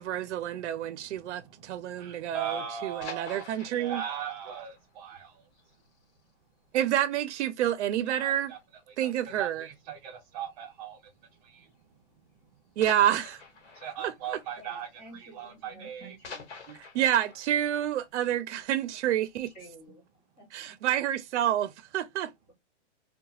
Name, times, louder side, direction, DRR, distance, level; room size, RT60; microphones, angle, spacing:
voice 1, 0.0-4.0 6.7-8.5 9.0-9.7 12.8-13.4 14.0-14.4 16.7-19.5 20.5-22.3, right 11 dB, 75° right, 0.5 m, -29 dB
voice 2, 1.2-5.4 8.1-8.6 9.0-9.1 9.4-11.0 11.4-11.7 13.7-14.9 15.1-16.2, right 8 dB, 35° right, 0.8 m, -39 dB
sound 1, 2.8-6.3 6.6-6.7 7.2-7.3 7.6-7.7 8.6-9.0 10.2-10.5 11.3-11.4 12.8-15.6 15.9-19.0 19.4-19.5, left 5 dB, 75° left, 1.1 m, -48 dB
voice 3, 14.6-16.5 19.5-20.0 20.4-20.7, right 1 dB, 10° left, 0.3 m, -51 dB
2.7 x 2.2 x 2.8 m
hypercardioid pair, 165°, 35 cm